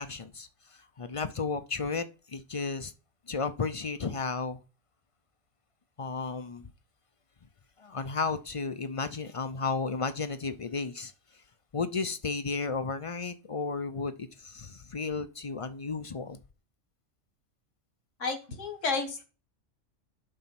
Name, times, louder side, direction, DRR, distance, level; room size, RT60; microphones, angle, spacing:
voice 1, 0.0-2.9 3.3-4.6 6.0-6.7 7.8-11.4 11.7-16.4, left 4 dB, 40° left, 0.5 m, -33 dB
voice 2, 18.2-19.2, left 4 dB, 80° left, 2.1 m, -31 dB
11.5 x 4.2 x 5.9 m
omnidirectional pair, 1.3 m